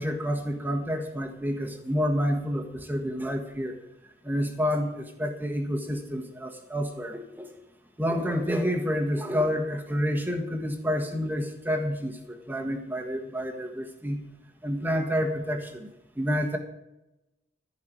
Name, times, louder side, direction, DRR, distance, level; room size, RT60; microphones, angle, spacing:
voice 1, 0.0-3.8 4.2-7.5 8.0-14.2 14.6-16.6, equal, 10° right, 4 dB, 1.6 m, -29 dB
14.0 x 5.8 x 8.8 m, 0.95 s
head